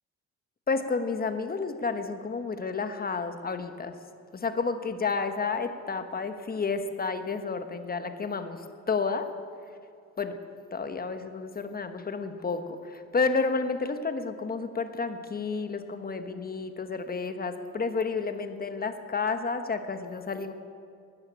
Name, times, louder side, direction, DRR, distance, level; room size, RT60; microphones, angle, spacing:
voice 1, 0.7-3.9 4.3-8.6 8.9-9.3 10.2-10.4 10.7-20.5, left 4 dB, 30° left, 8 dB, 1.2 m, -31 dB
13.5 x 9.7 x 10.0 m, 2.5 s
cardioid pair, 90°, 30 cm